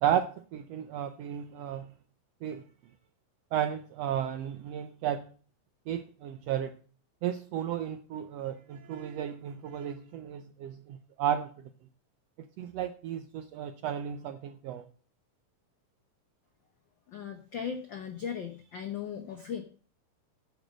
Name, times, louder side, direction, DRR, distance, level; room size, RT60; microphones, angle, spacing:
voice 1, 0.0-1.9 2.4-2.6 3.5-5.2 5.9-6.8 7.2-11.7 12.4-14.8, right 10 dB, 80° right, 9 dB, 1.4 m, -33 dB
voice 2, 17.1-19.6, left 7 dB, 90° left, 4 dB, 1.0 m, -37 dB
9.3 x 6.4 x 7.4 m, 0.41 s
omnidirectional pair, 3.5 m